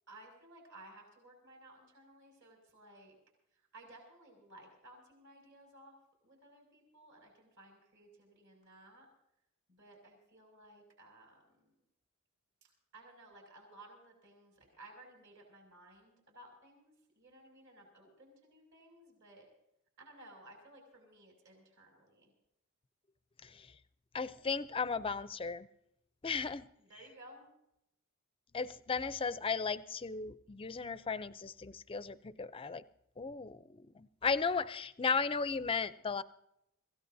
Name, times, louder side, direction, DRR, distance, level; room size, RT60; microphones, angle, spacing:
voice 1, 0.1-3.1 3.7-6.0 6.2-9.1 9.7-11.7 12.9-19.5 20.0-22.3 26.9-27.5, right 1 dB, 60° right, 6.1 m, -57 dB
voice 2, 23.4-23.7 24.1-25.7 26.2-26.7 28.5-32.8 33.2-36.2, left 5 dB, 25° left, 0.5 m, -35 dB
26.0 x 16.0 x 2.7 m
head